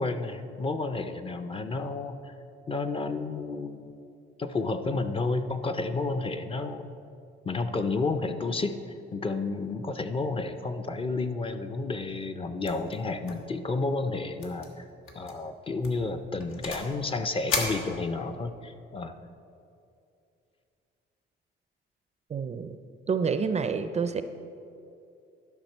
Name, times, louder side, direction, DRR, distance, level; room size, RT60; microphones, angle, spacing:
voice 1, 0.0-2.3 2.7-3.9 4.4-6.9 7.5-8.8 9.1-14.8 15.2-19.1, left 3 dB, 25° left, 8 dB, 0.4 m, -31 dB
sound 1, 12.6-12.9 13.2-13.5 13.8-13.9 14.4-14.7 15.1-15.3 15.8-17.0 17.5-18.5, left 4 dB, 90° left, 1.3 m, -34 dB
voice 2, 22.3-22.8 23.1-24.2, right 5 dB, 35° right, 10 dB, 0.4 m, -28 dB
12.0 x 5.8 x 4.4 m, 2.6 s
cardioid pair, 125°, 21 cm